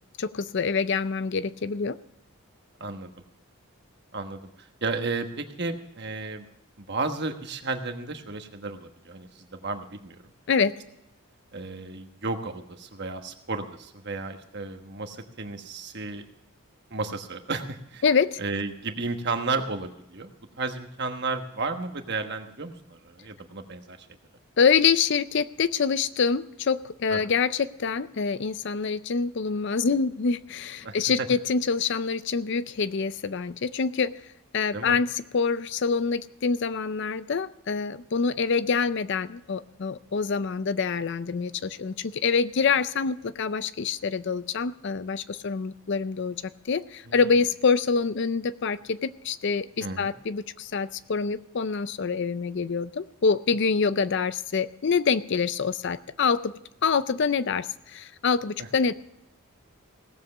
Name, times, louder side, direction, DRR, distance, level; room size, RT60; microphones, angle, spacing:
voice 1, 0.2-2.0 10.5-10.8 18.0-18.4 24.6-34.1 34.5-56.5 56.8-58.9, left 5 dB, 50° left, 15 dB, 0.5 m, -26 dB
voice 2, 2.8-3.1 4.1-6.5 6.8-10.2 11.5-16.2 16.9-18.0 18.4-20.3 20.6-24.1 27.1-27.2 30.8-31.3 34.7-35.0 47.1-47.2 49.8-50.1, right 3 dB, 50° right, 6 dB, 1.2 m, -33 dB
17.0 x 7.6 x 6.7 m, 0.84 s
head